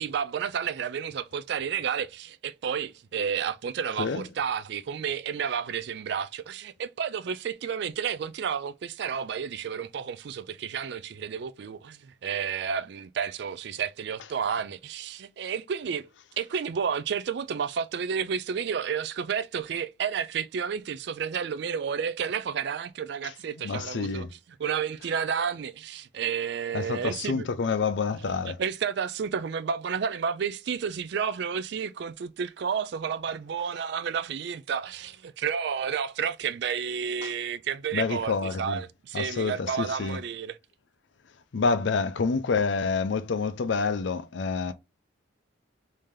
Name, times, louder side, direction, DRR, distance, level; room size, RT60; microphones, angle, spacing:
voice 1, 0.0-16.1 16.4-24.3 24.6-27.5 28.4-38.3 38.6-40.6, right 7 dB, 55° right, 0.3 m, -31 dB
voice 2, 23.6-24.3 26.7-28.6 37.2-37.3 37.9-38.8 39.1-40.2 41.5-44.7, left 4 dB, 65° left, 0.5 m, -28 dB
3.3 x 2.8 x 3.5 m
head